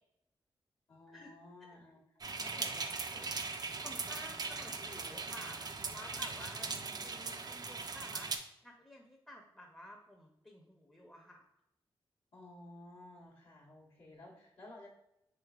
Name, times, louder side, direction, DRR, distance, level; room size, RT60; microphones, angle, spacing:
voice 1, 0.9-3.4 6.6-7.1 12.3-14.9, left 1 dB, 80° left, -9 dB, 1.1 m, -55 dB
sound 1, 2.2-8.4, right 4 dB, 45° right, 0.3 m, -40 dB
voice 2, 3.5-6.7 7.0-11.4, left 1 dB, 10° left, 0 dB, 0.6 m, -53 dB
3.1 x 3.1 x 2.3 m, 0.84 s
cardioid pair, 50°, 10 cm